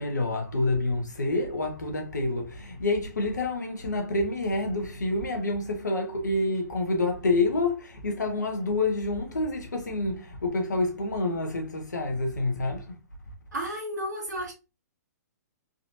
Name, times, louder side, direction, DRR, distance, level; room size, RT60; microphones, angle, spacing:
voice 1, 0.0-12.9, left 2 dB, 80° left, 1.3 m, -28 dB
voice 2, 13.5-14.5, equal, 75° right, 1.1 m, -32 dB
4.0 x 2.9 x 2.7 m
figure-of-eight pair, 120°, 9 cm